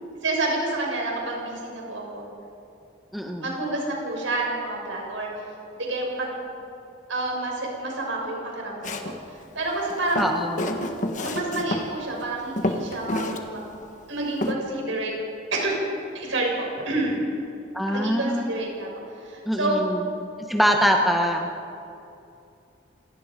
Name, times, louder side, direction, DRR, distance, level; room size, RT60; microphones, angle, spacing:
voice 1, 0.2-2.3 3.4-5.3 5.8-6.4 7.1-9.1 9.5-10.3 11.2-13.7 14.1-15.1 15.5-15.8 16.1-17.2 17.9-18.9 19.2-19.8, right 2 dB, 85° right, -1 dB, 6.2 m, -28 dB
voice 2, 3.1-3.5 10.1-10.6 17.7-18.4 19.4-20.1 20.5-21.5, equal, ahead, 2 dB, 1.3 m, -23 dB
Walk footsteps, 8.8-9.2 9.9-11.9 12.2-12.3 12.6-13.4 13.7-13.8 14.4-14.5, left 1 dB, 40° left, 1.5 m, -28 dB
27.0 x 18.5 x 5.3 m, 2.6 s
head